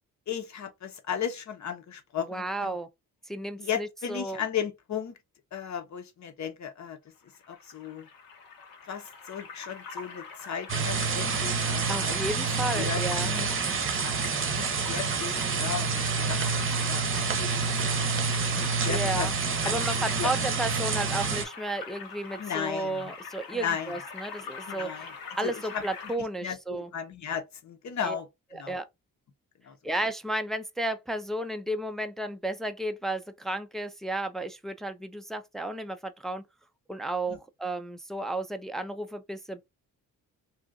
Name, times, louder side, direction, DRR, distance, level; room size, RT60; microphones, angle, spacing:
voice 1, 0.3-2.8 3.6-5.2 5.5-7.0 7.5-8.1 8.8-17.6 18.5-19.8 20.2-20.3 22.4-23.1 23.5-23.9 24.7-25.8 26.2-28.8 29.6-29.8 37.3-37.4, left 8 dB, 50° left, 0.9 m, -36 dB
voice 2, 2.3-2.9 3.3-4.4 11.9-13.3 18.9-19.3 19.7-25.1 25.4-26.9 28.0-28.2 28.5-28.9 29.8-36.4 36.9-39.6, right 1 dB, ahead, 0.4 m, -33 dB
sound 1, 7.3-26.2, left 5 dB, 80° left, 1.1 m, -43 dB
sound 2, 10.7-21.4, right 5 dB, 35° right, 0.8 m, -28 dB
2.8 x 2.4 x 3.6 m
cardioid pair, 95°, 35 cm